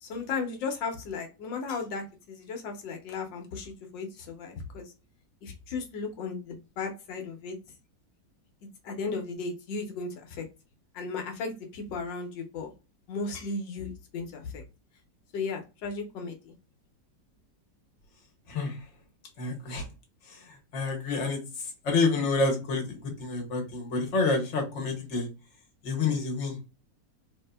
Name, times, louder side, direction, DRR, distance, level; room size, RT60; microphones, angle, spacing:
voice 1, 0.0-4.9 5.4-7.6 8.8-10.4 10.9-12.7 13.1-14.6 15.3-16.5, left 4 dB, 85° left, 4 dB, 1.5 m, -35 dB
voice 2, 19.4-19.8 20.3-21.4 21.8-25.3 25.8-26.6, left 3 dB, 45° left, 1 dB, 1.3 m, -28 dB
3.9 x 2.7 x 2.2 m, 0.28 s
omnidirectional pair, 1.9 m